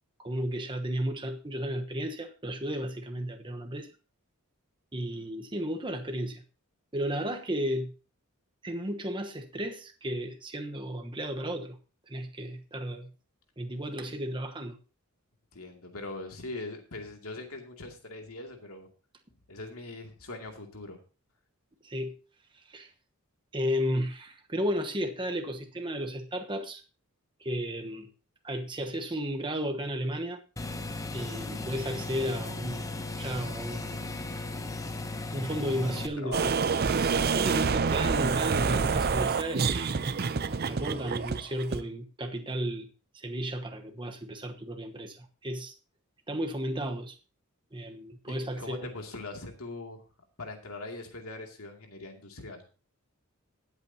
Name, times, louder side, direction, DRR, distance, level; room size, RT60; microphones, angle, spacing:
voice 1, 0.2-3.9 4.9-6.4 6.9-7.9 8.6-11.8 12.1-13.1 13.6-14.8 21.8-22.2 22.7-22.9 23.5-26.8 27.4-28.1 28.4-30.4 31.1-32.9 33.2-34.0 35.3-36.5 36.9-40.0 40.7-42.9 43.1-45.7 46.3-47.2 47.7-48.8, equal, 20° right, 5 dB, 1.1 m, -33 dB
voice 2, 15.5-18.9 19.5-21.0 36.0-36.7 48.3-50.0 50.4-52.6, left 2 dB, 75° left, 3 dB, 2.5 m, -41 dB
sound 1, 30.6-36.1, left 2 dB, 15° left, 0.8 m, -36 dB
sound 2, 36.3-41.8, right 5 dB, 45° right, 0.6 m, -27 dB
19.0 x 8.3 x 2.8 m, 0.33 s
head